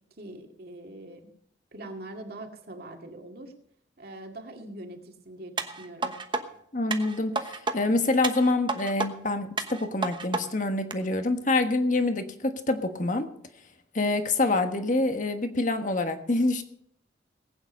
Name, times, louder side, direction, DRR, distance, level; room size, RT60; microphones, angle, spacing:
voice 1, 0.2-1.3 1.7-3.5 4.0-6.2, right 1 dB, 55° right, 3 dB, 2.3 m, -43 dB
sound 1, 5.6-6.4 6.9-7.8 8.2-9.1 9.6-10.4 10.9-11.0, right 3 dB, 25° right, 1.1 m, -30 dB
voice 2, 6.7-13.3 13.9-16.6, left 2 dB, 45° left, 7 dB, 1.4 m, -26 dB
19.5 x 9.1 x 5.4 m, 0.69 s
head